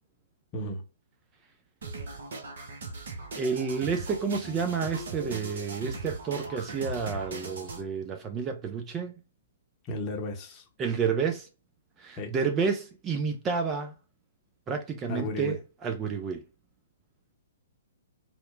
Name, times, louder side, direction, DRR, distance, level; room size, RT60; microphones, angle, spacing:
sound 1, 1.8-7.8, right 3 dB, 60° right, 0.6 m, -39 dB
voice 1, 3.3-9.2 10.8-11.5 12.0-13.9 14.7-16.4, right 5 dB, 20° right, 0.3 m, -30 dB
voice 2, 9.9-10.7 12.2-12.3 15.1-15.6, left 1 dB, 25° left, 0.7 m, -34 dB
2.8 x 2.0 x 2.4 m
figure-of-eight pair, 120°, 0 cm